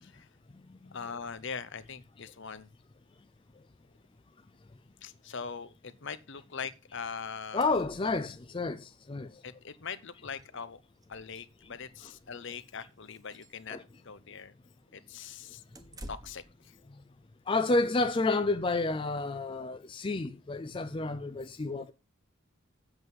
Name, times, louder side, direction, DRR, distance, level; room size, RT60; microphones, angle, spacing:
voice 1, 0.9-2.7 5.0-7.8 9.4-10.8 11.1-13.8 14.0-14.5 14.9-15.6 16.1-16.7, left 6 dB, 55° left, 0.8 m, -42 dB
sound 1, 6.6-6.8 7.1-7.2 7.3-8.6 9.9-10.0 10.3-10.5 11.0-11.9 12.4-12.6 13.1-13.6 15.7-16.6, right 1 dB, 15° right, 1.2 m, -51 dB
voice 2, 7.5-9.4 12.0-12.1 13.7-13.8 17.5-21.9, left 3 dB, 25° left, 0.4 m, -30 dB
7.9 x 7.8 x 5.4 m
head